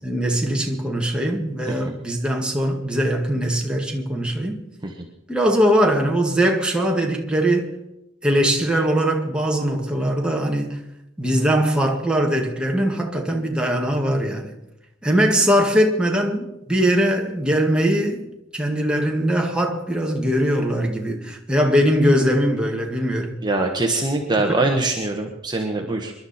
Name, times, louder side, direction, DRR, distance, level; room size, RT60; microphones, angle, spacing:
voice 1, 0.0-4.6 5.3-7.8 8.2-10.8 11.2-14.5 15.0-18.3 18.5-23.4 24.4-24.7, equal, 5° right, 2.0 m, -21 dB
voice 2, 23.4-26.1, right 2 dB, 20° right, 1.4 m, -23 dB
27.0 x 11.5 x 4.3 m
head